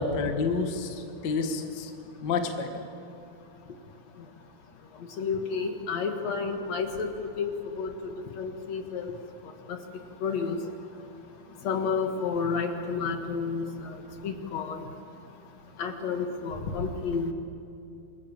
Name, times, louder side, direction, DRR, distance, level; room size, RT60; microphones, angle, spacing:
voice 1, 0.0-1.9 2.2-2.8 3.7-3.8, left 4 dB, 70° left, 5 dB, 1.0 m, -29 dB
voice 2, 5.2-7.1 7.4-7.5 7.8-7.9 8.4-9.1 10.2-10.6 11.6-14.0 14.2-14.8 15.8-17.3, left 5 dB, 55° left, 5 dB, 2.3 m, -30 dB
27.0 x 21.5 x 7.3 m, 2.7 s
omnidirectional pair, 4.8 m